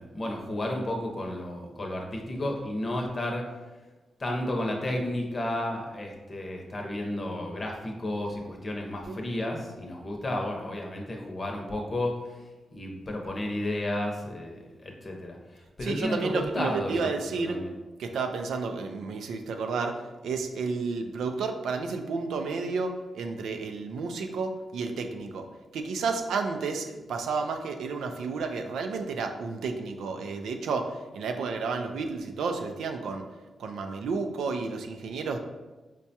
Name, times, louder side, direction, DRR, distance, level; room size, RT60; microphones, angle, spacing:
voice 1, 0.0-3.6 4.2-12.4 12.7-17.7, left 1 dB, 45° left, 1 dB, 0.7 m, -32 dB
voice 2, 15.8-17.6 18.0-25.5 25.7-33.3 33.6-35.4, right 4 dB, 85° right, 5 dB, 0.3 m, -31 dB
4.6 x 2.2 x 2.7 m, 1.2 s
supercardioid pair, 50°, 0 cm